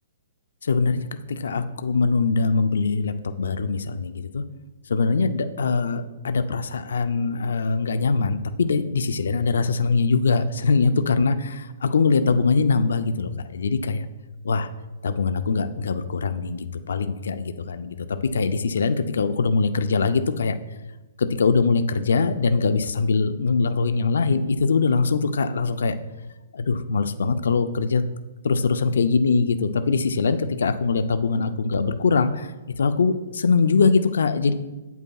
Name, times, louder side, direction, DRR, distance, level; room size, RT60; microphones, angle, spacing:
voice 1, 0.6-4.4 4.9-14.1 14.4-14.7 15.0-20.5 21.2-26.0 26.5-28.0 28.4-34.5, left 4 dB, 85° left, 10 dB, 0.4 m, -22 dB
8.3 x 8.1 x 2.3 m, 1.1 s
hypercardioid pair, 160°, 0 cm